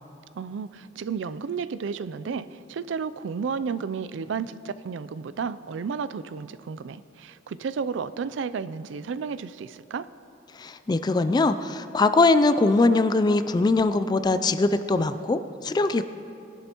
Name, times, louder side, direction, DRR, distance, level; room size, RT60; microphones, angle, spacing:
voice 1, 0.4-10.1, right 5 dB, 80° right, 15 dB, 0.4 m, -32 dB
voice 2, 10.6-16.0, left 3 dB, 20° left, 11 dB, 0.3 m, -22 dB
20.0 x 11.0 x 3.0 m, 2.8 s
head